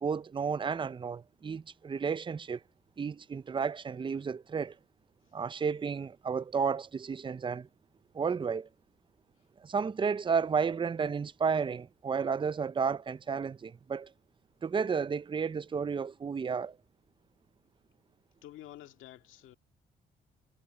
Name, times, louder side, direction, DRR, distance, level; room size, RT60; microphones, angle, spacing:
voice 1, 0.0-2.6 3.0-4.7 5.3-7.7 8.1-8.7 9.6-14.1 14.6-16.8, right 6 dB, 25° right, 0.5 m, -32 dB
voice 2, 18.4-19.6, left 13 dB, 90° left, 2.0 m, -49 dB
cardioid pair, 90°, 20 cm